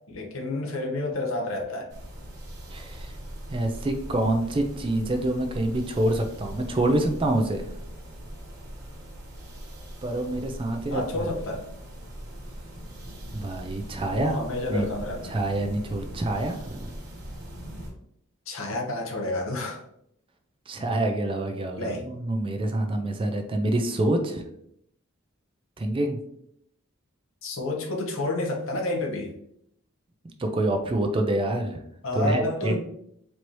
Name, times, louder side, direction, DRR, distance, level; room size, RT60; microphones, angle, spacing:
voice 1, 0.1-1.9 10.9-11.6 14.1-15.3 18.5-19.8 20.8-20.9 21.8-22.0 27.4-29.3 32.0-32.8, left 2 dB, 65° left, 1 dB, 0.9 m, -29 dB
sound 1, 1.9-17.9, equal, 50° right, 1.3 m, -40 dB
voice 2, 2.7-3.1 3.5-7.7 10.0-11.3 13.3-14.4 14.7-14.9 15.2-16.9 20.7-24.4 25.8-26.2 30.4-31.8 32.2-32.8, right 1 dB, 25° right, 5 dB, 0.4 m, -26 dB
4.5 x 2.7 x 3.0 m, 0.73 s
head